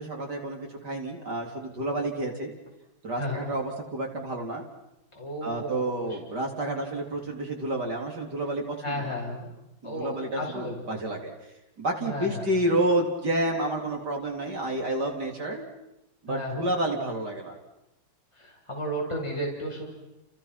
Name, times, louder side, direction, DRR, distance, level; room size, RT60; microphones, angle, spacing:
voice 1, 0.0-2.5 3.0-4.6 5.4-9.1 9.8-11.3 11.8-15.6 16.2-17.6, right 1 dB, 50° right, 1 dB, 4.3 m, -30 dB
voice 2, 5.1-6.2 8.8-9.5 9.8-10.8 12.0-12.4 16.3-16.6 18.4-19.9, equal, 15° left, -2 dB, 5.9 m, -33 dB
30.0 x 29.5 x 6.1 m, 0.89 s
omnidirectional pair, 2.2 m